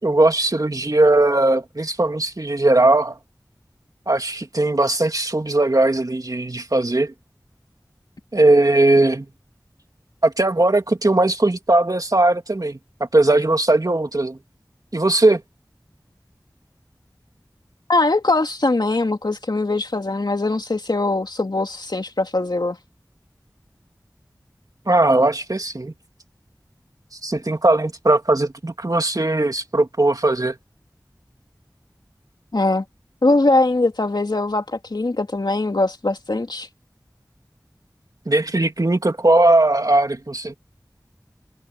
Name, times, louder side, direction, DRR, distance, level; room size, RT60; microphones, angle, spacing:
voice 1, 0.0-3.2 4.1-7.1 8.3-9.3 10.2-12.8 13.1-14.4 14.9-15.4 24.9-25.9 27.2-30.6 38.3-40.5, right 2 dB, 55° right, 2.7 m, -18 dB
voice 2, 17.9-22.8 32.5-32.8 33.2-36.7, left 2 dB, 75° left, 2.8 m, -21 dB
wide cardioid pair, 45°, 7 cm